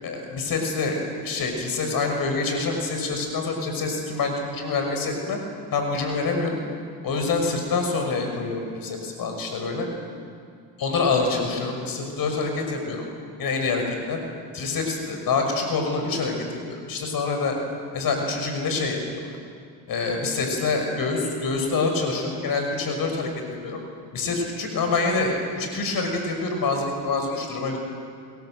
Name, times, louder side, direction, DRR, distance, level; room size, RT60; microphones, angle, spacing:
voice 1, 0.0-5.4 5.7-6.6 7.0-9.9 10.8-13.0 13.4-14.2 14.5-17.6 17.9-19.3 19.9-23.3 23.6-23.8 24.1-27.8, left 3 dB, 60° left, 3 dB, 6.1 m, -26 dB
30.0 x 22.0 x 7.9 m, 2.3 s
supercardioid pair, 80°, 40 cm